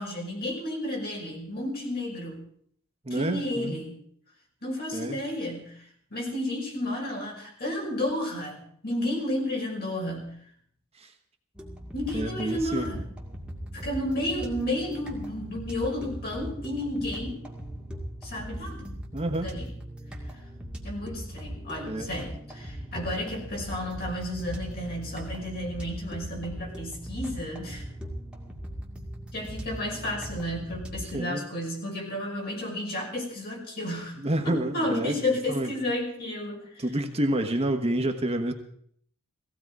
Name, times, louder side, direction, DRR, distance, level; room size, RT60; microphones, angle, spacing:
voice 1, 0.0-2.4 3.1-4.0 4.6-5.8 6.1-10.4 11.9-13.1 13.7-17.4 18.2-18.9 19.4-19.7 20.8-27.8 29.3-34.2 34.4-36.8, left 1 dB, 50° left, -1 dB, 5.6 m, -32 dB
voice 2, 3.0-3.8 4.9-5.2 11.0-11.1 12.1-12.9 19.1-19.5 21.8-22.1 31.1-31.5 34.2-35.7 36.8-38.5, right 1 dB, 30° right, 5 dB, 1.1 m, -29 dB
sound 1, 11.5-31.2, equal, 5° right, 2.3 m, -39 dB
17.5 x 16.0 x 4.8 m, 0.64 s
head